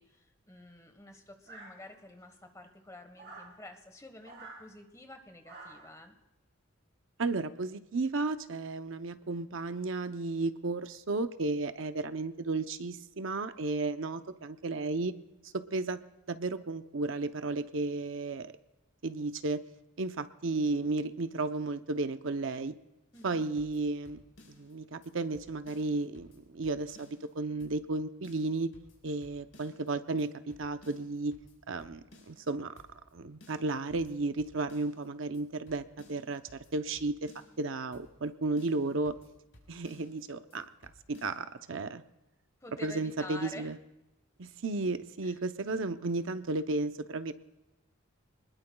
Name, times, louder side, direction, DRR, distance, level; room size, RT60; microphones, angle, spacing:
voice 1, 0.0-6.1 23.1-23.5 42.6-43.7 45.2-45.4, left 2 dB, 15° left, 6 dB, 1.3 m, -49 dB
sound 1, 1.5-2.2 3.1-3.6 4.2-4.6 5.4-6.0, right 3 dB, 50° right, 4.0 m, -49 dB
voice 2, 7.2-15.1 15.5-16.0 16.3-18.5 19.0-19.6 20.0-22.7 23.2-24.2 24.5-28.7 29.0-31.4 31.7-32.7 33.1-36.4 36.7-37.3 37.6-39.1 39.7-40.7 41.1-42.0 42.8-43.8 44.4-47.3, right 3 dB, 65° right, 10 dB, 0.7 m, -33 dB
sound 2, 23.1-24.7 25.0-25.1 25.3-27.3 27.6-28.0 28.2-29.9 30.2-30.3 30.5-32.5 32.8-33.1 33.4-35.1 35.3-35.4 35.7-37.6 37.9-38.3 38.6-40.2 40.5-40.6 40.8-41.4, left 1 dB, 65° left, 4.4 m, -59 dB
25.5 x 20.5 x 2.3 m, 0.96 s
head